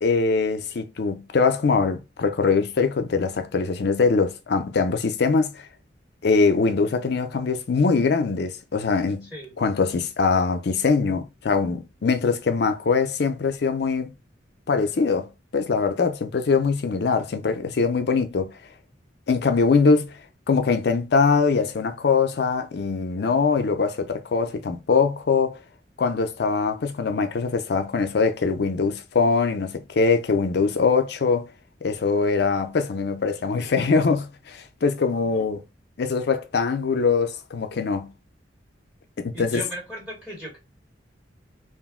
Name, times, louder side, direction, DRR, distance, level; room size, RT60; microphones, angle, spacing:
voice 1, 0.0-5.6 6.2-9.3 9.6-14.1 14.7-18.5 19.3-20.2 20.5-25.5 26.0-31.5 31.8-35.6 36.0-38.1 39.2-39.6, left 4 dB, 60° left, 0.5 m, -22 dB
voice 2, 39.3-40.6, right 1 dB, 5° right, 1.0 m, -37 dB
2.5 x 2.0 x 3.6 m
head